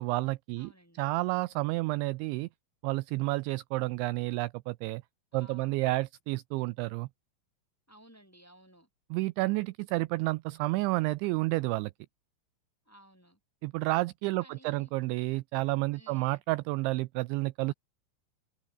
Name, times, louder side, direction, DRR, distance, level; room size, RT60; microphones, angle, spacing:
voice 1, 0.0-0.7 1.0-2.5 2.8-5.0 5.3-7.1 9.1-11.9 13.6-17.7, right 21 dB, 85° right, 2.6 m, -30 dB
voice 2, 0.6-1.0 5.3-5.8 7.9-8.9 12.8-13.4 14.4-14.9 15.9-16.4, right 1 dB, 5° left, 4.5 m, -57 dB
omnidirectional pair, 5.9 m